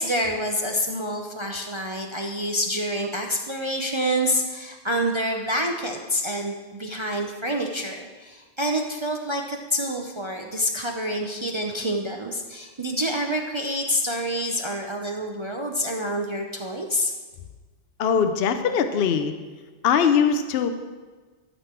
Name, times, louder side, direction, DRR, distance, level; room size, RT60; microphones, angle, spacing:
voice 1, 0.0-17.1, equal, 30° right, 1 dB, 0.6 m, -27 dB
voice 2, 18.0-19.3 19.8-20.7, left 7 dB, 60° left, 8 dB, 0.8 m, -21 dB
13.0 x 6.5 x 4.5 m, 1.4 s
omnidirectional pair, 1.3 m